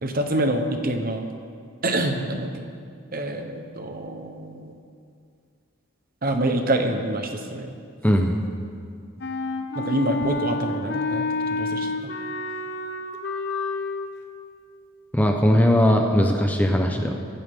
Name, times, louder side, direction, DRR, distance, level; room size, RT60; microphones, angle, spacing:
voice 1, 0.0-1.3 1.8-2.7 3.1-4.7 6.2-7.7 9.7-11.9, right 1 dB, 40° right, 5 dB, 1.0 m, -26 dB
voice 2, 8.0-8.4 15.1-17.1, equal, 5° left, 2 dB, 0.8 m, -19 dB
Wind instrument woodwind instrument, 9.2-14.1, left 3 dB, 50° left, 1.0 m, -29 dB
23.5 x 11.0 x 3.7 m, 2.3 s
head